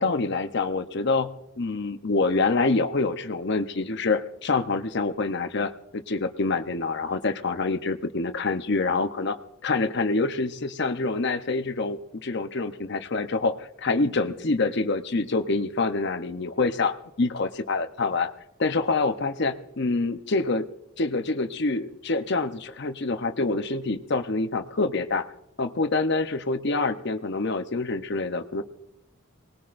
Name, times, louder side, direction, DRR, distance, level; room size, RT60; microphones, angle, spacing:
voice 1, 0.0-18.3 18.6-20.7 21.0-25.3 25.6-28.6, left 3 dB, 55° left, 8 dB, 0.8 m, -26 dB
24.5 x 19.5 x 2.6 m, 0.83 s
head